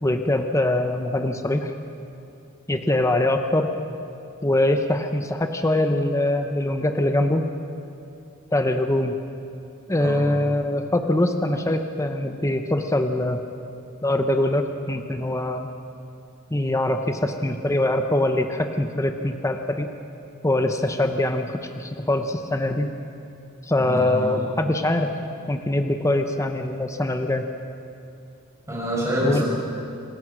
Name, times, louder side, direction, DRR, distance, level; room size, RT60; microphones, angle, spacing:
voice 1, 0.0-1.7 2.7-3.7 4.4-7.4 8.5-9.2 9.9-13.4 14.0-15.7 16.5-19.9 20.4-22.9 23.6-25.1 25.5-27.5 29.2-29.4, left 1 dB, 15° left, 6 dB, 0.8 m, -23 dB
voice 2, 23.8-24.3 28.7-29.4, equal, 15° right, -5 dB, 6.8 m, -26 dB
27.0 x 16.0 x 6.2 m, 2.6 s
head